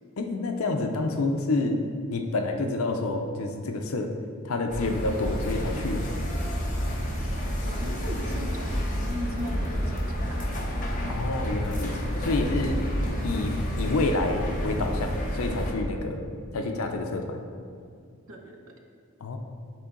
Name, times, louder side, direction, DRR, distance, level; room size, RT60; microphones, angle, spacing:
voice 1, 0.2-4.1 4.4-6.2 11.1-12.8 13.2-17.4 19.2-19.4, left 2 dB, 75° left, 4 dB, 0.6 m, -28 dB
sound 1, 4.7-15.7, equal, 35° left, 0.9 m, -29 dB
voice 2, 7.6-10.8 18.3-18.7, equal, 70° right, 2 dB, 0.8 m, -39 dB
9.6 x 3.8 x 3.8 m, 2.3 s
head